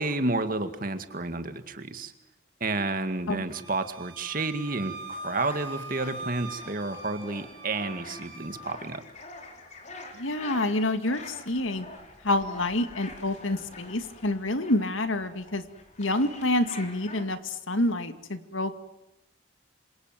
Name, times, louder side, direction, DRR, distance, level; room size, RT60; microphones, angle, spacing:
voice 1, 0.0-2.1 2.6-9.0, right 2 dB, 45° right, 9 dB, 2.1 m, -31 dB
Wind instrument woodwind instrument, 3.5-8.7, right 2 dB, 80° right, 5.2 m, -42 dB
sound 1, 4.6-17.2, left 2 dB, 35° left, 4.5 m, -46 dB
voice 2, 10.1-11.9 12.2-15.6 16.0-18.7, left 1 dB, 80° left, 9 dB, 2.2 m, -27 dB
27.0 x 27.0 x 7.6 m, 0.86 s
head